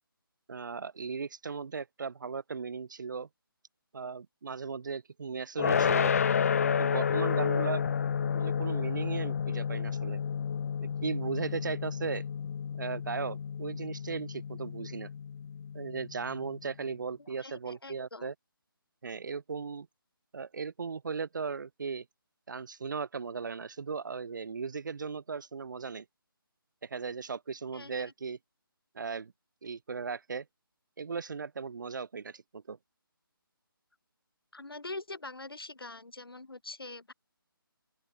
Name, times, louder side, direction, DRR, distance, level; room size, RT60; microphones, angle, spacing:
voice 1, 0.5-3.3 3.9-6.1 6.6-7.8 8.3-10.2 10.8-12.2 12.7-15.1 15.7-18.3 19.0-19.9 20.3-22.1 22.5-26.0 26.8-28.4 28.9-29.3 29.6-30.5 31.0-32.8, right 5 dB, 55° right, 0.7 m, -37 dB
sound 1, 5.6-16.6, left 7 dB, 40° left, 0.7 m, -31 dB
voice 2, 17.2-18.3 27.7-28.1 34.5-37.1, left 2 dB, 75° left, 2.9 m, -44 dB
open air
figure-of-eight pair, 150°, 12 cm